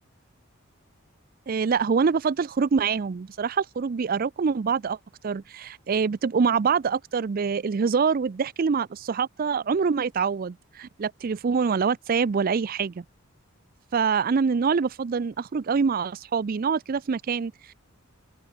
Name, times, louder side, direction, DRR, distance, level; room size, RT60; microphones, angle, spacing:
voice 1, 1.5-5.0 5.2-13.0 13.9-17.7, right 5 dB, 45° right, 0.4 m, -25 dB
open air
head